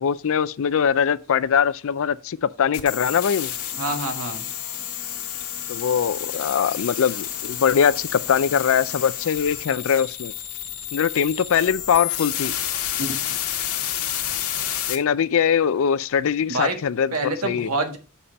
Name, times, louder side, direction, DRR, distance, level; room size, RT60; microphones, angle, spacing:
voice 1, 0.0-3.5 5.7-10.3 10.9-12.5 14.9-17.7, left 7 dB, 65° left, 0.4 m, -22 dB
sound 1, 2.7-14.9, left 10 dB, 90° left, 1.4 m, -30 dB
voice 2, 3.8-4.5 13.0-13.2 16.5-16.8 17.1-18.0, right 2 dB, 80° right, 1.5 m, -26 dB
7.1 x 4.2 x 5.1 m
head